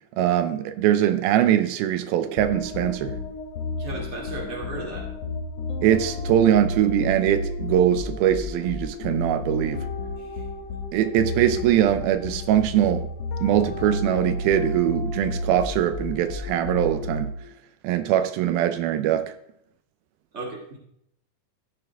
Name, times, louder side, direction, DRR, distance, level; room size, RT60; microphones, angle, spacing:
voice 1, 0.2-3.2 5.8-9.8 10.9-13.1 13.4-17.3 17.8-19.3, right 11 dB, 85° right, 11 dB, 2.5 m, -22 dB
sound 1, 2.4-17.5, left 3 dB, 65° left, 1.7 m, -32 dB
voice 2, 3.8-5.1 10.3-10.4 20.3-20.8, right 2 dB, 20° right, -1 dB, 2.4 m, -34 dB
15.5 x 6.9 x 3.5 m, 0.71 s
omnidirectional pair, 4.2 m